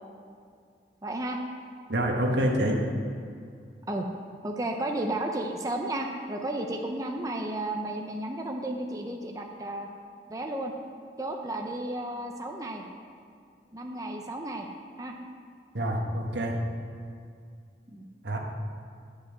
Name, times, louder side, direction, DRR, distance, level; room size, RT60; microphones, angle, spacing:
voice 1, 1.0-1.4 3.9-4.1 4.4-9.9 10.3-10.7 11.2-12.8 13.7-14.7 15.0-15.1 17.9-18.1, right 1 dB, 20° right, 2 dB, 0.6 m, -33 dB
voice 2, 1.9-2.8 15.7-16.6 18.2-18.4, right 1 dB, 80° right, 1 dB, 1.4 m, -26 dB
10.5 x 5.2 x 7.3 m, 2.3 s
head